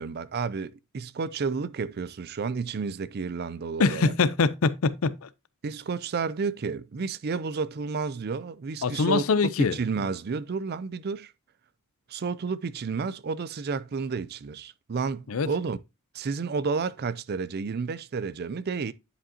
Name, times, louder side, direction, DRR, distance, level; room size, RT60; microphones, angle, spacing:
voice 1, 0.0-4.1 5.6-9.2 9.6-11.3 12.1-15.8 16.1-18.9, right 5 dB, 45° right, 0.4 m, -31 dB
voice 2, 3.8-5.3 8.8-9.8 15.3-15.5, left 4 dB, 70° left, 0.5 m, -24 dB
10.0 x 5.2 x 2.7 m
head